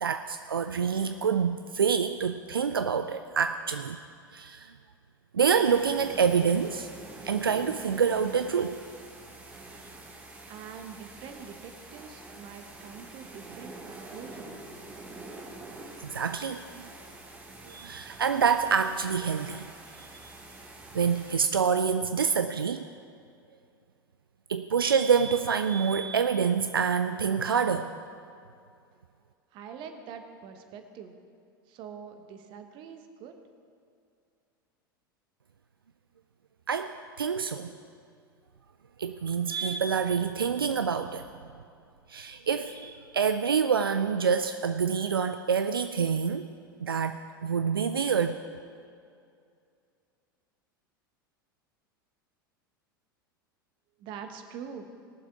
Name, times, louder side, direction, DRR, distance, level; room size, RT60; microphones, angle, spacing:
voice 1, 0.0-4.0 4.3-4.7 5.3-6.9 7.2-8.8 16.0-16.9 17.7-19.7 20.0-20.3 20.9-22.8 24.5-27.9 36.7-37.7 39.0-41.2 42.1-46.5 46.8-48.4, right 6 dB, 80° right, 9 dB, 0.4 m, -27 dB
sound 1, 5.6-21.4, right 2 dB, 15° right, 2.6 m, -46 dB
voice 2, 10.4-14.7 29.5-31.1 31.7-33.4 54.0-54.8, right 7 dB, 45° right, 6 dB, 1.2 m, -44 dB
18.5 x 7.3 x 4.8 m, 2.4 s
figure-of-eight pair, 80°, 12 cm